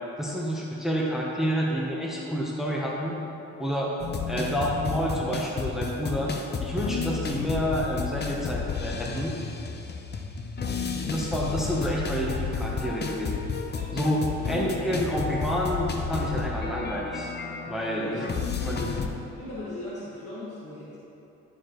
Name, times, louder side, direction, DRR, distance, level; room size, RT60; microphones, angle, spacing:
voice 1, 0.2-3.2 3.6-3.9 4.3-6.3 6.6-9.3 11.1-13.5 13.9-17.3 17.7-18.2 18.6-18.9, equal, ahead, -3 dB, 0.9 m, -29 dB
sound 1, 4.0-19.1, left 5 dB, 35° left, 0.7 m, -32 dB
voice 2, 10.8-11.2 13.8-13.9 14.4-14.5 17.9-18.3 18.6-18.7 19.4-21.0, left 1 dB, 50° left, -9 dB, 1.7 m, -38 dB
12.5 x 4.8 x 3.1 m, 3.0 s
cardioid pair, 90°, 30 cm